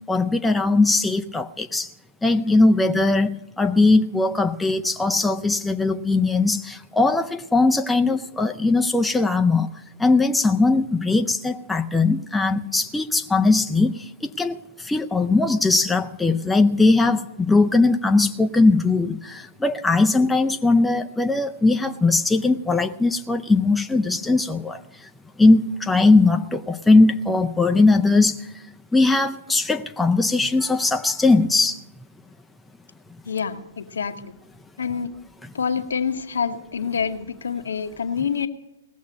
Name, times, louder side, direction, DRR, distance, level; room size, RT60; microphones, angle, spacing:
voice 1, 0.1-1.9 2.2-9.7 10.0-24.8 25.4-28.5 28.9-31.8, left 3 dB, 5° left, 0.5 m, -19 dB
voice 2, 33.2-34.3 34.8-35.1 35.5-38.5, left 6 dB, 75° left, 1.0 m, -27 dB
18.5 x 7.3 x 9.4 m
figure-of-eight pair, 115°, 0 cm